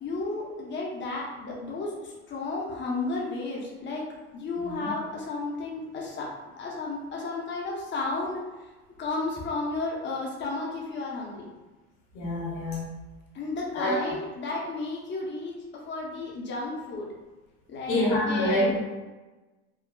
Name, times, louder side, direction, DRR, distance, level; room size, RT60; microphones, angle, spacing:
voice 1, 0.0-4.0 4.3-6.3 6.6-8.7 9.0-11.5 13.3-15.5 15.9-17.1 17.7-18.7, left 3 dB, 35° left, -3 dB, 0.8 m, -33 dB
voice 2, 4.6-4.9 12.1-12.9 13.7-13.9 17.9-18.8, left 1 dB, 80° left, -5 dB, 1.4 m, -26 dB
3.7 x 2.2 x 2.2 m, 1.2 s
supercardioid pair, 115°, 32 cm